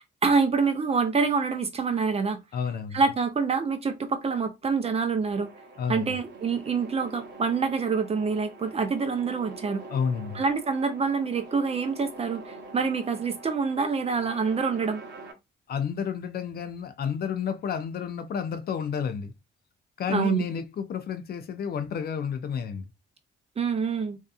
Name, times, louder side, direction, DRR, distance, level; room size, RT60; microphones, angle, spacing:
voice 1, 0.2-2.4 2.9-5.5 5.9-9.8 10.3-15.0 20.1-20.4 23.6-24.2, right 5 dB, 30° right, 0.5 m, -26 dB
voice 2, 2.5-3.0 5.8-6.1 9.9-10.4 15.7-19.3 20.0-22.8, left 7 dB, 50° left, 0.5 m, -30 dB
sound 1, 5.3-15.3, right 3 dB, 60° right, 0.8 m, -45 dB
2.7 x 2.3 x 2.3 m
cardioid pair, 90°, 20 cm